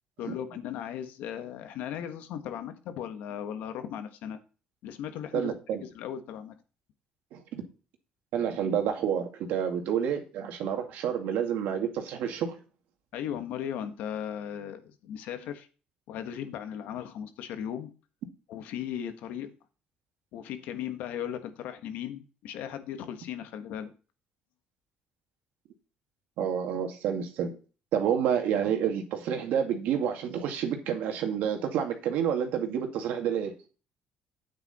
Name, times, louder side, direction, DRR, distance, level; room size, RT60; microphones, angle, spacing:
voice 1, 0.2-4.4 4.8-5.5 5.9-6.5 13.1-15.7 16.1-17.9 18.5-19.5 20.3-23.9, left 9 dB, 85° left, 8 dB, 1.4 m, -37 dB
voice 2, 5.3-5.8 7.3-7.6 8.3-12.6 26.4-27.6 27.9-33.5, right 8 dB, 80° right, 4 dB, 2.2 m, -29 dB
9.1 x 8.2 x 4.2 m, 0.35 s
cardioid pair, 100°, 3 cm